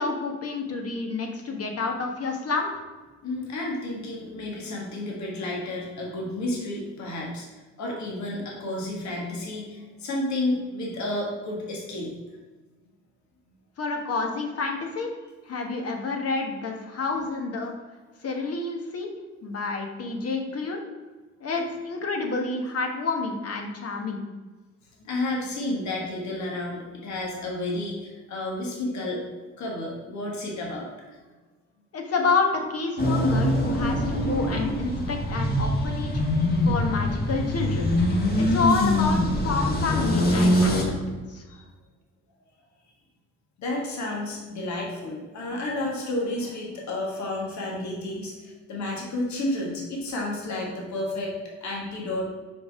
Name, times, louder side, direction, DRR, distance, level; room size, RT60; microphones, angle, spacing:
voice 1, 0.0-2.7 13.8-15.1 15.5-17.7 18.2-19.1 19.4-20.8 21.4-24.2 31.9-36.2 36.6-37.9 38.4-40.7 41.1-41.4, left 4 dB, 50° left, 3 dB, 1.3 m, -29 dB
voice 2, 3.2-7.5 7.8-12.1 25.0-29.3 29.6-30.9 38.1-38.4 41.5-41.6 43.6-52.2, left 1 dB, 65° left, -2 dB, 1.8 m, -31 dB
sound 1, 33.0-40.8, left 1 dB, 30° left, 1.5 m, -23 dB
5.2 x 5.0 x 4.7 m, 1.3 s
cardioid pair, 90°, 30 cm